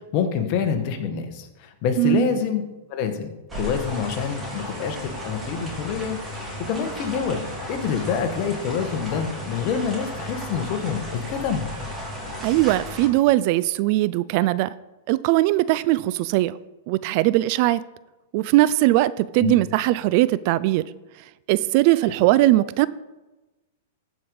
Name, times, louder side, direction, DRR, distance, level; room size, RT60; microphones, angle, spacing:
voice 1, 0.1-2.6 2.9-3.3 3.6-6.2 6.7-11.6 19.4-19.5, left 7 dB, 45° left, 6 dB, 1.5 m, -26 dB
sound 1, 3.5-13.1, equal, 10° right, 3.6 m, -34 dB
voice 2, 12.4-14.7 15.1-16.5 16.9-17.8 18.3-20.8 21.5-22.9, right 17 dB, 50° right, 18 dB, 0.4 m, -20 dB
14.5 x 5.3 x 4.8 m, 1.1 s
hypercardioid pair, 130°, 0 cm